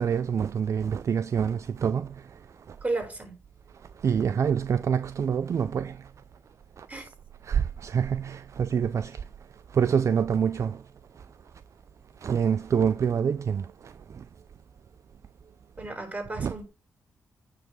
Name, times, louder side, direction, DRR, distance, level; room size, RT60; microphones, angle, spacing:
voice 1, 0.0-2.1 4.0-5.9 7.5-9.1 9.8-10.7 12.2-13.6 16.4-16.5, right 7 dB, 50° right, 0.4 m, -26 dB
voice 2, 2.8-3.4 6.9-7.1 15.8-16.7, right 2 dB, 25° right, 3.8 m, -33 dB
9.4 x 3.3 x 5.1 m
supercardioid pair, 55°, 6 cm